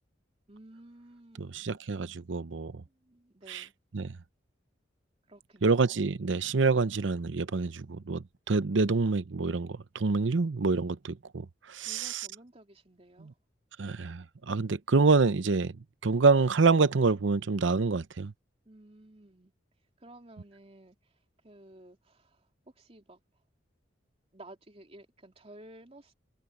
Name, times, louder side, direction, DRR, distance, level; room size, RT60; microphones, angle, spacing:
voice 1, 0.5-1.7 2.9-3.7 5.3-6.0 11.8-13.3 18.6-19.5 20.0-23.4 24.3-26.1, right 1 dB, 35° right, 3.1 m, -54 dB
voice 2, 1.4-2.8 3.5-3.6 3.9-4.2 5.6-12.1 13.8-18.3, right 4 dB, 85° right, 0.7 m, -27 dB
head